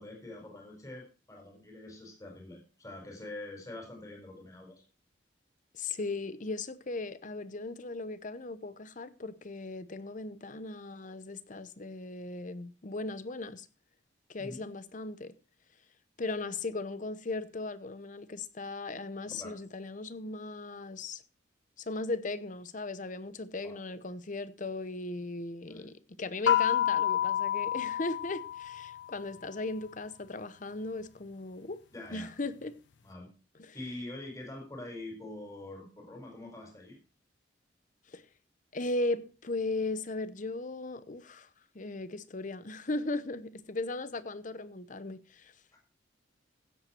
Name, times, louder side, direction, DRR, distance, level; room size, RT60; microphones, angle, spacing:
voice 1, 0.0-4.8 14.4-14.6 19.3-19.6 23.6-23.7 25.7-25.9 31.9-32.3 33.0-33.3 33.7-37.0, left 2 dB, 20° left, 4.7 m, -45 dB
voice 2, 5.7-13.7 14.3-15.3 16.2-21.2 21.8-31.8 32.1-32.7 33.6-33.7 38.1-38.2 38.7-41.5 41.7-45.5, left 2 dB, 45° left, 0.8 m, -37 dB
sound 1, 26.5-29.2, left 10 dB, 70° left, 0.6 m, -29 dB
15.5 x 8.0 x 4.5 m
head